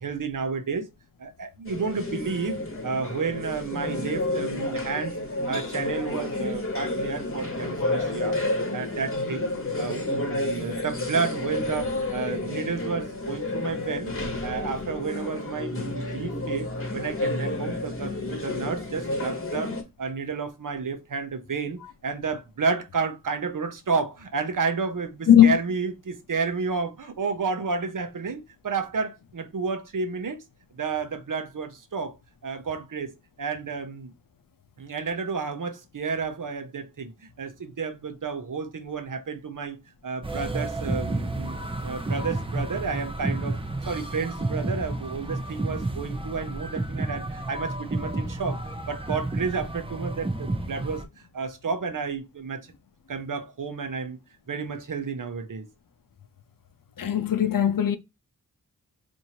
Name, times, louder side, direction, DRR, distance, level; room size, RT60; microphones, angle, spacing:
voice 1, 0.0-0.9 1.2-5.1 5.5-8.4 8.7-9.5 9.8-14.1 14.4-19.7 20.0-30.4 30.7-32.2 32.4-34.1 34.8-39.8 40.0-41.6 41.8-43.6 43.9-51.1 51.3-52.7 53.1-54.2 54.5-55.7, right 5 dB, 65° right, 0.8 m, -31 dB
sound 1, 1.7-19.8, left 2 dB, 40° left, 1.1 m, -30 dB
voice 2, 25.3-25.6 57.0-58.0, left 10 dB, 70° left, 0.6 m, -18 dB
sound 2, 40.2-51.0, right 2 dB, 15° right, 0.6 m, -31 dB
4.4 x 2.7 x 2.8 m
wide cardioid pair, 70°, 35 cm